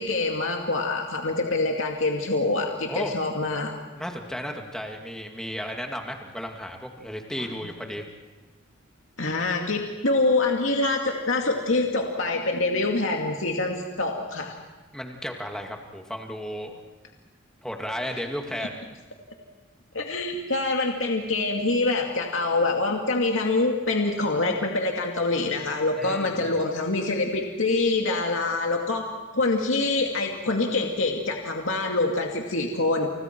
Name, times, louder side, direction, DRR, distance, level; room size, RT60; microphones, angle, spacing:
voice 1, 0.0-3.7 9.2-14.5 19.9-29.1 29.3-33.1, left 2 dB, 75° left, 1 dB, 2.4 m, -25 dB
voice 2, 3.9-8.1 14.9-16.8 17.6-18.8 26.0-26.5, equal, 5° left, 2 dB, 2.3 m, -34 dB
30.0 x 29.5 x 4.6 m, 1.3 s
head